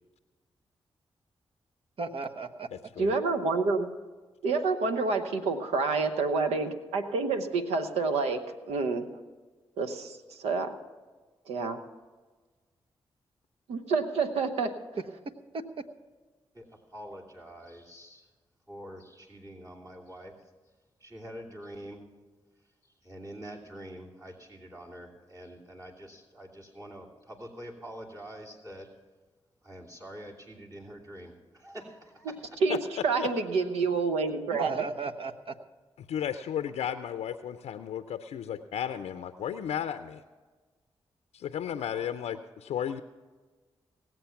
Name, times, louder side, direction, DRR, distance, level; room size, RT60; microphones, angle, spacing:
voice 1, 2.0-2.7 15.5-15.8 34.5-35.6, right 4 dB, 60° right, 6 dB, 1.1 m, -35 dB
voice 2, 3.0-3.9 4.4-9.1 9.8-10.7 11.5-11.8 13.7-14.7 32.6-32.8 33.0-34.7, right 4 dB, 90° right, 7 dB, 1.0 m, -28 dB
voice 3, 16.5-18.3 18.7-20.3 21.0-22.1 22.8-28.9 29.6-32.4, equal, 35° right, -3 dB, 2.8 m, -46 dB
voice 4, 36.1-40.2 41.3-43.0, left 9 dB, 80° left, 10 dB, 0.5 m, -34 dB
18.5 x 7.8 x 5.8 m, 1.3 s
supercardioid pair, 40°, 11 cm